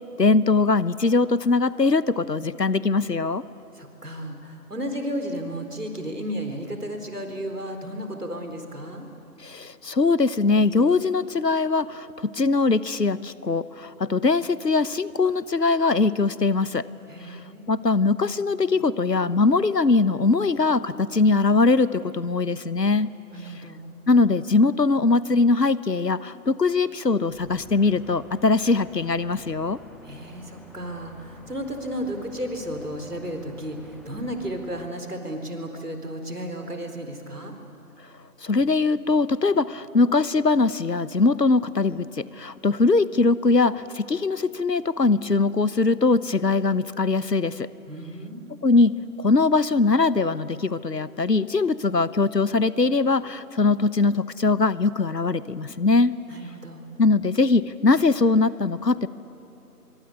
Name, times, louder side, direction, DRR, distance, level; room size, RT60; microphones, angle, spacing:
voice 1, 0.2-3.4 9.4-16.8 17.3-17.4 17.7-23.1 24.1-29.8 38.4-47.7 48.6-48.9 49.2-56.1 57.0-59.1, left 3 dB, 85° left, 17 dB, 1.1 m, -21 dB
voice 2, 3.7-9.1 17.1-17.6 23.3-23.9 30.0-37.5 47.9-48.5 56.3-56.9, equal, 70° right, 5 dB, 4.2 m, -33 dB
sound 1, 27.3-34.9, left 1 dB, ahead, 0.9 m, -49 dB
24.0 x 24.0 x 9.7 m, 2.9 s
figure-of-eight pair, 175°, 48 cm